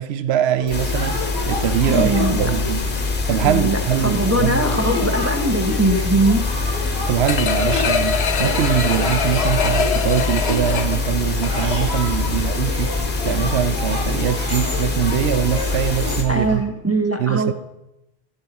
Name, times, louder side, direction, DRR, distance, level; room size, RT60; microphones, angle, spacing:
voice 1, 0.0-2.9 3.3-4.6 7.1-16.6 17.2-17.5, right 10 dB, 80° right, 0.9 m, -22 dB
sound 1, 0.6-16.6, left 1 dB, 45° right, 3.2 m, -30 dB
sound 2, 0.7-16.2, left 3 dB, 55° left, 1.4 m, -24 dB
voice 2, 1.9-2.5 3.4-6.5 16.3-17.5, right 1 dB, 20° right, 0.5 m, -21 dB
sound 3, 7.3-12.0 12.4-12.5, left 6 dB, 90° left, 1.1 m, -24 dB
16.5 x 5.5 x 4.0 m
omnidirectional pair, 1.1 m